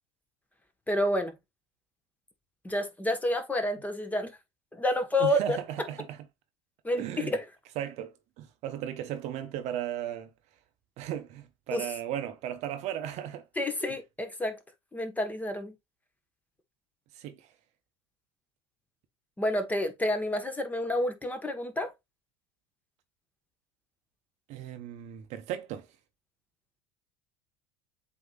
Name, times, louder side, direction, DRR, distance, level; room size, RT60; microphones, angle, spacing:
voice 1, 0.9-1.3 2.6-4.3 4.7-5.6 6.8-7.4 11.7-11.9 13.6-14.6 14.9-15.7 19.4-21.9, left 1 dB, 10° left, 1.1 m, -29 dB
voice 2, 5.2-6.2 6.9-7.3 7.8-10.3 11.0-13.4 13.8-13.9 17.1-17.5 24.5-25.9, right 10 dB, 55° right, 0.7 m, -36 dB
7.7 x 2.8 x 2.3 m
hypercardioid pair, 85°, 14 cm